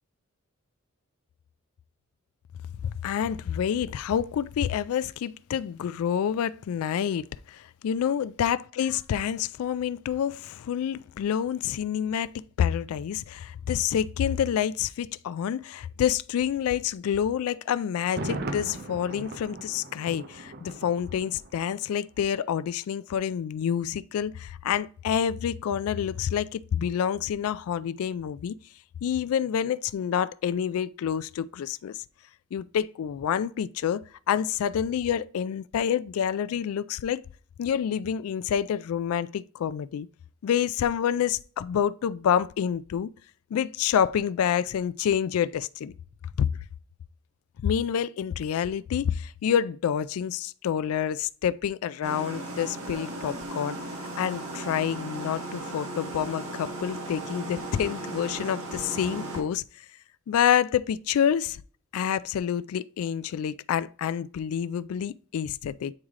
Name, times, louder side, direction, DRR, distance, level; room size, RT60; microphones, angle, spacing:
voice 1, 2.8-12.3 12.6-28.5 29.0-32.0 32.5-37.2 37.6-40.1 40.4-43.1 43.5-45.9 46.4-46.5 47.6-53.8 54.2-59.6 60.3-61.6 61.9-65.9, left 8 dB, 80° left, 0.3 m, -28 dB
Thunder, 18.0-21.9 22.2-22.3, right 2 dB, 45° right, 0.6 m, -38 dB
sound 1, 52.0-59.4, right 2 dB, 70° right, 1.5 m, -36 dB
8.6 x 3.1 x 3.6 m
head